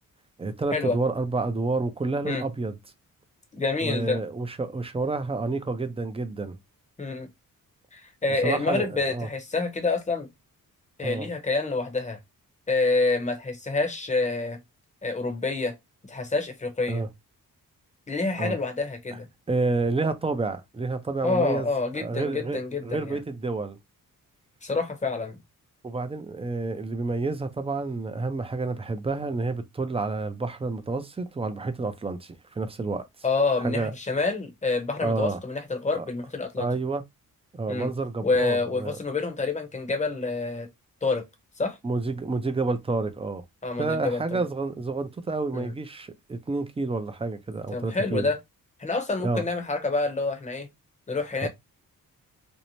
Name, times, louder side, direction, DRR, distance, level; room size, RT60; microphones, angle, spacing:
voice 1, 0.4-2.8 3.8-6.6 8.4-9.3 11.0-11.3 16.9-17.1 18.4-18.6 19.5-21.7 21.9-23.8 25.8-33.1 33.6-33.9 35.0-35.4 35.9-36.1 36.6-37.0 37.5-39.0 41.8-43.4 43.8-48.3 49.2-49.4 51.4-51.5, right 3 dB, 15° right, 0.4 m, -29 dB
voice 2, 3.5-4.2 7.0-7.3 7.9-10.3 11.0-12.2 12.7-14.6 15.0-15.8 16.1-17.0 18.1-19.3 21.2-23.2 24.6-25.4 33.2-36.7 37.7-37.9 38.2-40.7 41.0-41.3 41.6-41.8 43.6-44.4 45.5-45.7 47.7-48.4 48.8-50.7 51.1-51.5, left 3 dB, 20° left, 0.7 m, -27 dB
2.6 x 2.0 x 2.9 m
wide cardioid pair, 100°, 35 cm